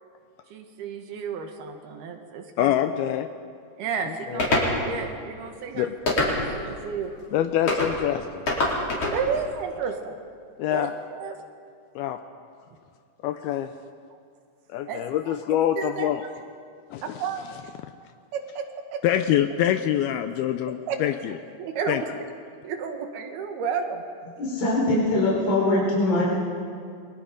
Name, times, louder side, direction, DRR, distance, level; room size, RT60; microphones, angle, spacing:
voice 1, 0.5-2.8 3.8-4.5 4.8-7.1 9.1-10.2 10.7-11.4 14.1-14.2 14.9-15.4 15.8-16.3 17.0-17.4 18.3-18.7 18.9-19.0 20.2-20.3 20.9-21.0 21.6-22.1 22.6-24.0, right 6 dB, 70° right, 5 dB, 3.5 m, -32 dB
voice 2, 2.6-3.3 4.1-4.4 5.7-5.9 6.4-6.5 7.3-8.5 10.6-10.9 12.0-12.2 13.2-13.7 14.7-16.2 16.9-17.3 19.0-21.4 21.9-22.0, left 11 dB, 80° left, 8 dB, 2.5 m, -25 dB
sound 1, 4.4-4.7 6.1-6.6 7.7-7.9 8.5-9.2, left 2 dB, 35° left, 5.0 m, -23 dB
voice 3, 24.4-26.2, left 2 dB, 60° left, -6 dB, 6.5 m, -22 dB
29.5 x 23.5 x 5.2 m, 2.3 s
omnidirectional pair, 4.7 m